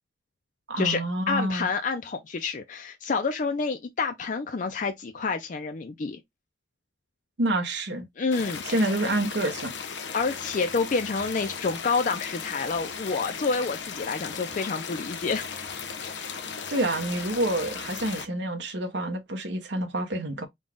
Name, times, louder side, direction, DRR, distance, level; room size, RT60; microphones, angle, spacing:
voice 1, 0.7-1.7 7.4-8.1 8.6-9.7 16.7-20.5, right 1 dB, 75° right, 0.9 m, -28 dB
voice 2, 1.3-6.2 8.2-8.8 10.1-15.5, left 4 dB, 45° left, 0.4 m, -28 dB
sound 1, 8.3-18.3, left 6 dB, 80° left, 0.7 m, -36 dB
3.9 x 2.3 x 3.6 m
head